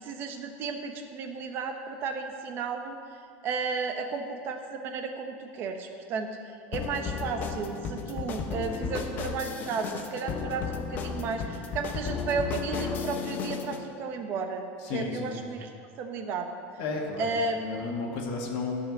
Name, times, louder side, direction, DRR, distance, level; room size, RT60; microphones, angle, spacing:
voice 1, 0.0-3.0 3.4-15.7 16.0-16.5 17.2-17.8, right 4 dB, 40° right, 5 dB, 1.0 m, -33 dB
sound 1, 6.7-13.8, left 6 dB, 30° left, 0.7 m, -34 dB
voice 2, 14.8-15.5 16.8-18.9, left 3 dB, 60° left, -1 dB, 1.8 m, -33 dB
11.5 x 5.7 x 6.7 m, 2.4 s
cardioid pair, 165°, 6 cm